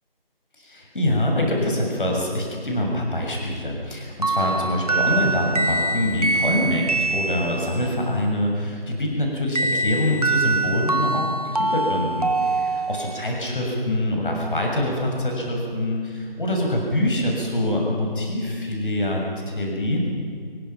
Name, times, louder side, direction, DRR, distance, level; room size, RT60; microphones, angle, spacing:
voice 1, 0.6-20.1, left 1 dB, 60° left, 0 dB, 6.8 m, -25 dB
sound 1, 4.2-8.0 9.5-13.3, right 2 dB, 40° right, 1.0 m, -24 dB
29.0 x 24.0 x 5.9 m, 2.3 s
figure-of-eight pair, 165°, 30 cm